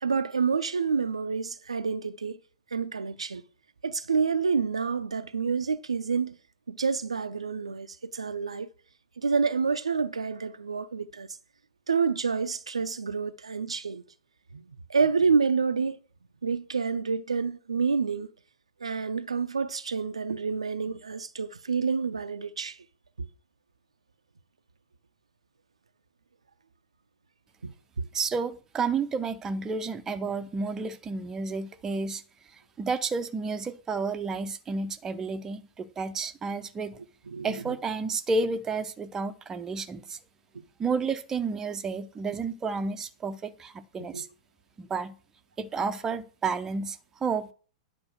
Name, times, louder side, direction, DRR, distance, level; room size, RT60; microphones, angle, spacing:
voice 1, 0.0-2.4 2.7-3.4 3.8-6.4 6.7-8.7 9.2-11.3 11.9-14.0 14.5-16.0 16.4-18.3 18.8-22.8 23.2-23.3 27.6-28.1 37.3-37.8 40.5-40.6 44.0-44.2, right 5 dB, 75° right, 0.5 m, -28 dB
voice 2, 28.1-32.2 32.8-37.0 37.4-40.2 40.8-44.3 44.8-45.1 45.6-47.5, right 4 dB, 15° right, 0.7 m, -31 dB
9.8 x 4.5 x 6.4 m
figure-of-eight pair, 100°, 3 cm